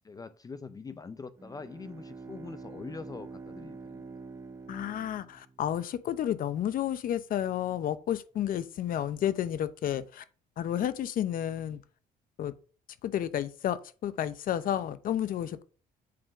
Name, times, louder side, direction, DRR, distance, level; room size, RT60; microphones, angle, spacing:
voice 1, 0.0-4.0, left 4 dB, 20° left, 0.5 m, -43 dB
Bowed string instrument, 1.4-6.0, right 4 dB, 15° right, 0.7 m, -46 dB
voice 2, 4.7-10.2 10.6-11.8 12.4-12.5 13.0-15.6, left 10 dB, 55° left, 0.7 m, -31 dB
7.7 x 3.7 x 4.9 m
cardioid pair, 110°, 17 cm